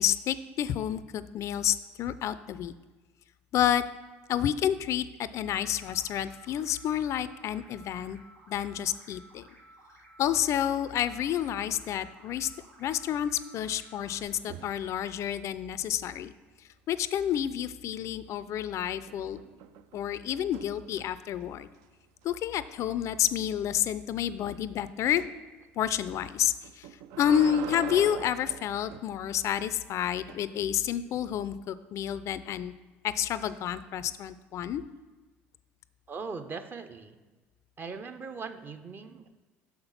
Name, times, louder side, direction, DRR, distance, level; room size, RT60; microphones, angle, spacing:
voice 1, 0.0-2.7 3.5-3.8 4.3-8.2 8.5-9.5 10.2-12.5 12.8-16.3 16.9-19.4 19.9-21.7 22.2-25.2 25.8-26.9 27.2-32.7 33.0-34.8, left 10 dB, 55° left, 15 dB, 0.4 m, -29 dB
sound 1, 5.4-14.2, right 1 dB, 90° right, 1.2 m, -56 dB
sound 2, 10.7-11.4 11.6-12.0 14.3-14.9 18.0-18.5 18.9-21.3 21.7-21.9 22.2-22.3 22.7-22.8 25.2-25.4 26.6-29.1 29.9-30.4, right 10 dB, 70° right, 0.4 m, -44 dB
voice 2, 36.1-37.2 37.8-39.4, right 4 dB, 35° right, 8 dB, 0.7 m, -40 dB
6.4 x 5.8 x 5.6 m, 1.3 s
hypercardioid pair, 70°, 6 cm